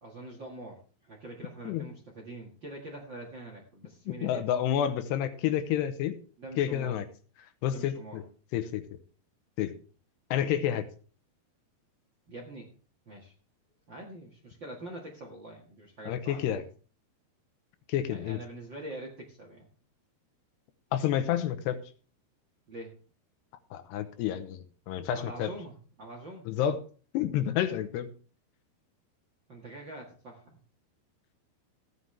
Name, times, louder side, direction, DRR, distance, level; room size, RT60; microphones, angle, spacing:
voice 1, 0.0-4.4 6.4-6.9 7.7-8.2 12.3-12.7 13.0-13.3 13.9-16.4 18.1-19.7 22.7-22.9 25.1-26.5 29.5-30.6, right 2 dB, 45° right, 1 dB, 1.5 m, -44 dB
voice 2, 4.1-6.2 6.6-7.1 7.6-8.2 8.5-8.8 9.6-9.7 10.3-10.9 16.1-16.6 17.9-18.4 20.9-21.8 23.7-25.5 26.5-26.8 27.1-28.1, left 10 dB, 80° left, 10 dB, 3.0 m, -29 dB
15.5 x 9.5 x 3.3 m, 0.39 s
omnidirectional pair, 5.0 m